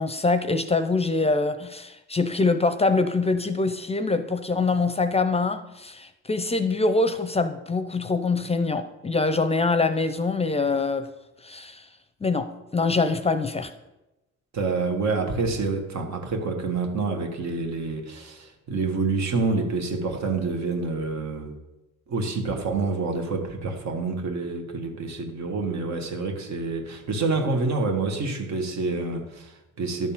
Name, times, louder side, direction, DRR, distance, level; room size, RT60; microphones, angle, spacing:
voice 1, 0.0-11.1 11.4-11.9 12.2-13.7, left 3 dB, 20° left, 10 dB, 0.6 m, -24 dB
voice 2, 14.5-21.5 22.1-30.1, right 3 dB, 65° right, 3 dB, 1.9 m, -27 dB
11.0 x 4.2 x 7.2 m, 0.98 s
cardioid pair, 90°, 30 cm